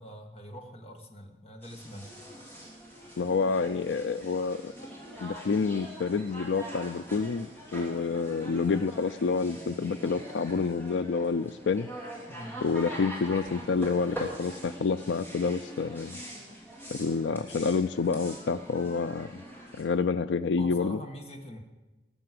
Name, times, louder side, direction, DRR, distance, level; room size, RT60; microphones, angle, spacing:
voice 1, 0.0-2.1 12.3-12.6 20.6-21.6, equal, 35° left, 3 dB, 1.7 m, -44 dB
sound 1, 1.6-19.8, right 1 dB, 10° left, 3.1 m, -43 dB
voice 2, 3.2-4.7 5.2-11.9 12.6-16.2 16.9-19.4 19.8-21.0, left 4 dB, 85° left, 14 dB, 0.4 m, -28 dB
19.5 x 6.9 x 7.7 m, 1.1 s
head